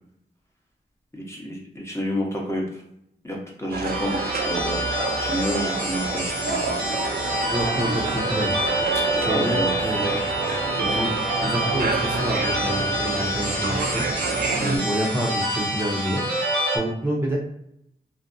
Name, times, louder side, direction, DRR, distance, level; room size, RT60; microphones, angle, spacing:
voice 1, 1.1-2.6 3.2-4.8 5.2-6.7 9.1-9.8 14.6-14.9, equal, 15° left, -2 dB, 0.9 m, -29 dB
sound 1, 3.7-14.8, right 4 dB, 55° right, 0.4 m, -28 dB
sound 2, 3.8-16.8, right 1 dB, 85° right, 0.8 m, -27 dB
voice 2, 7.5-8.5 9.1-10.2 10.8-11.1 11.4-14.0 14.8-16.2 16.7-17.4, equal, 15° right, -4 dB, 0.7 m, -28 dB
2.5 x 2.2 x 2.5 m, 0.76 s
cardioid pair, 40°, 18 cm